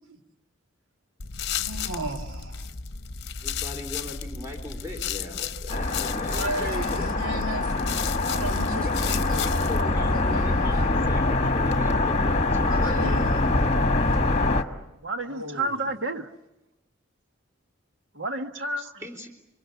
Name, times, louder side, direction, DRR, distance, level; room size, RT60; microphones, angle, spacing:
sound 1, 1.2-9.8, left 7 dB, 55° left, 0.9 m, -34 dB
voice 1, 1.6-2.7 6.3-7.7 8.2-10.7 12.4-13.7 15.2-15.8, right 2 dB, 85° right, 2.4 m, -35 dB
voice 2, 3.4-7.7 8.8-13.0 19.0-19.3, left 2 dB, 15° right, 3.8 m, -39 dB
sound 2, 5.7-14.6, left 2 dB, 30° left, 1.4 m, -24 dB
voice 3, 15.0-16.3 18.1-18.9, right 2 dB, 60° right, 1.5 m, -30 dB
28.0 x 24.5 x 7.1 m
head